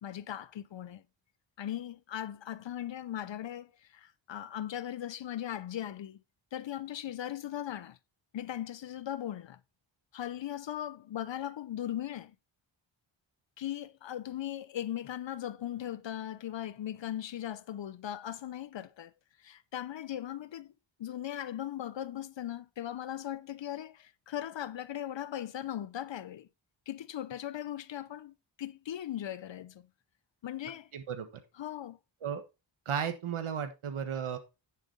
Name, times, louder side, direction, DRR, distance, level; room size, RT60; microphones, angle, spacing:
voice 1, 0.0-1.0 1.6-6.2 6.5-8.0 8.3-9.6 10.1-12.3 13.6-19.1 19.4-20.7 21.0-26.5 26.9-29.9 30.4-30.9 31.6-32.0, left 11 dB, 65° left, 0.7 m, -38 dB
voice 2, 30.9-31.4 32.2-32.4 32.8-34.4, right 7 dB, 85° right, 1.5 m, -34 dB
10.0 x 7.4 x 3.9 m
wide cardioid pair, 100°, 48 cm